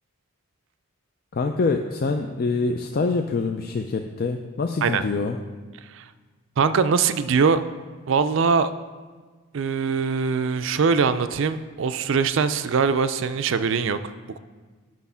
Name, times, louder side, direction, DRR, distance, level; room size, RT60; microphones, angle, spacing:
voice 1, 1.3-5.4, left 4 dB, 45° left, 5 dB, 0.4 m, -25 dB
voice 2, 6.6-7.6 8.1-8.7 9.5-14.4, right 5 dB, 60° right, 11 dB, 0.4 m, -22 dB
9.4 x 6.2 x 5.6 m, 1.4 s
head